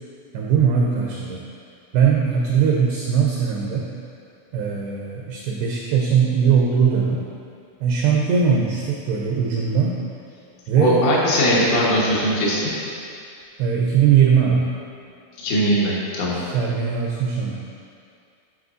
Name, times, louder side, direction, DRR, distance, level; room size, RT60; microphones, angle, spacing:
voice 1, 0.3-1.4 1.9-3.9 4.5-7.3 7.8-10.0 10.7-11.0 13.6-14.7 16.5-17.6, right 6 dB, 85° right, -2 dB, 2.4 m, -20 dB
voice 2, 10.8-12.7 15.4-16.4, equal, 80° left, -6 dB, 3.8 m, -20 dB
12.0 x 6.0 x 2.5 m, 2.4 s
omnidirectional pair, 5.6 m